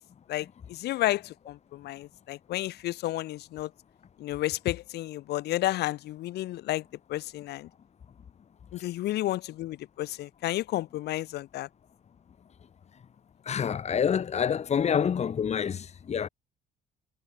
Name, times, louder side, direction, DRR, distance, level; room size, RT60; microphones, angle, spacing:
voice 1, 0.3-3.7 4.2-7.7 8.7-11.7, left 15 dB, 75° left, 4.6 m, -32 dB
voice 2, 13.4-16.3, left 7 dB, 40° left, 2.6 m, -27 dB
cardioid pair, 110°, 17 cm